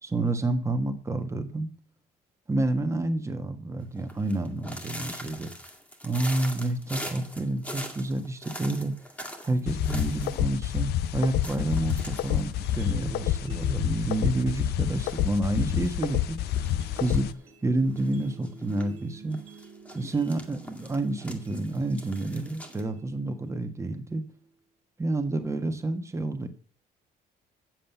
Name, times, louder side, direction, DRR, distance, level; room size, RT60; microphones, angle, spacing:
voice 1, 0.0-1.7 2.5-5.5 6.0-9.0 9.4-16.4 17.0-17.3 17.6-19.4 19.9-24.2 25.0-26.5, right 2 dB, 15° right, 6 dB, 1.5 m, -29 dB
sound 1, 4.0-10.4 10.7-10.8 11.0-11.1 11.4-13.5 13.9-14.4 14.9-15.9 16.5-17.3 17.9-18.8 19.3-22.8, equal, 10° left, 2.0 m, -42 dB
sound 2, 9.7-17.3, left 12 dB, 75° left, 0.5 m, -28 dB
sound 3, 12.5-24.5, right 5 dB, 40° right, 2.0 m, -51 dB
7.6 x 7.5 x 7.0 m, 0.44 s
cardioid pair, 110°, 17 cm